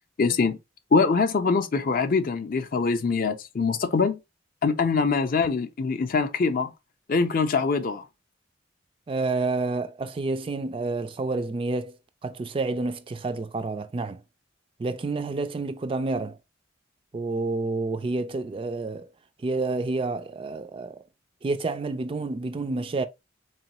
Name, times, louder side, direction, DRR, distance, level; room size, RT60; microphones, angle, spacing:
voice 1, 0.2-0.6 0.9-4.2 4.6-6.7 7.1-8.0, left 4 dB, 45° left, 0.4 m, -23 dB
voice 2, 9.1-14.2 14.8-16.4 17.1-19.1 19.4-21.0 21.4-23.0, right 3 dB, 25° right, 0.3 m, -29 dB
3.9 x 3.1 x 2.9 m
head